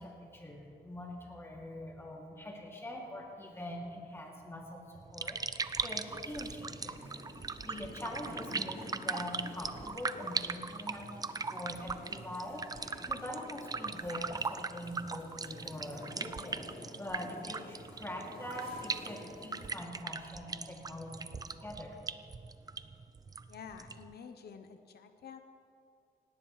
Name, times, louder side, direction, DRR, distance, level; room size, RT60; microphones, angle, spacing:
voice 1, 0.0-7.1 7.6-11.2 11.5-22.0, left 1 dB, 15° left, -2 dB, 2.6 m, -43 dB
sound 1, 4.9-24.1, right 4 dB, 25° right, 0.4 m, -40 dB
sound 2, 5.6-19.8, left 1 dB, 35° left, 3.8 m, -51 dB
voice 2, 23.5-25.4, left 6 dB, 80° left, 7 dB, 0.9 m, -49 dB
18.5 x 17.5 x 3.2 m, 2.5 s
wide cardioid pair, 125°, 16 cm